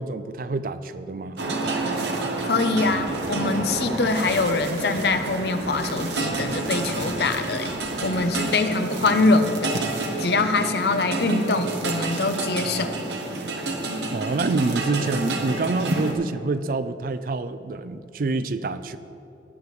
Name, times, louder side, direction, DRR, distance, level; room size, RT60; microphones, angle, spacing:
voice 1, 0.0-1.4 14.1-19.0, right 3 dB, 50° right, 12 dB, 0.4 m, -27 dB
sound 1, 1.4-16.1, right 2 dB, 75° right, 1.0 m, -29 dB
voice 2, 2.4-7.7 8.0-9.8 10.2-13.0, left 3 dB, 60° left, 8 dB, 0.6 m, -23 dB
sound 2, 2.9-8.3, equal, 15° right, 1.9 m, -45 dB
18.5 x 6.8 x 3.2 m, 2.7 s
head